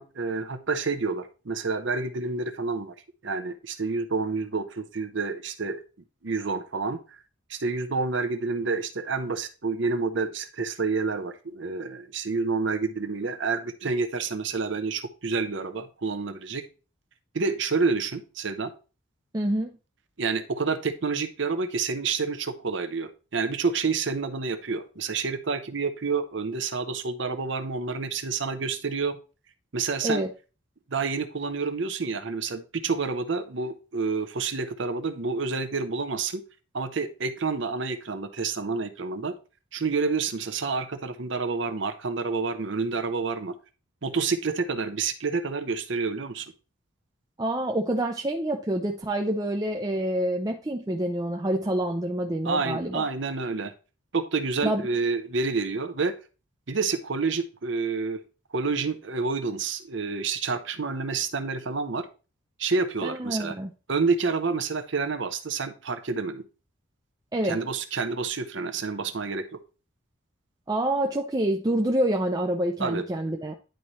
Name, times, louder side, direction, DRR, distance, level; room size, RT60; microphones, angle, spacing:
voice 1, 0.0-2.9 3.2-5.8 6.2-7.2 7.5-16.7 17.3-18.7 20.2-29.2 29.7-30.2 30.9-36.4 36.7-39.3 39.7-43.5 44.0-46.5 52.4-53.7 54.1-56.1 56.7-58.2 58.5-62.1 62.6-63.6 63.9-66.5 67.4-69.6 72.8-73.0, right 4 dB, 60° right, 10 dB, 0.8 m, -28 dB
voice 2, 19.3-19.7 30.0-30.3 47.4-53.1 54.6-54.8 63.0-63.7 67.3-67.6 70.7-73.5, right 1 dB, 20° right, 2 dB, 0.5 m, -27 dB
10.5 x 4.2 x 3.0 m, 0.33 s
head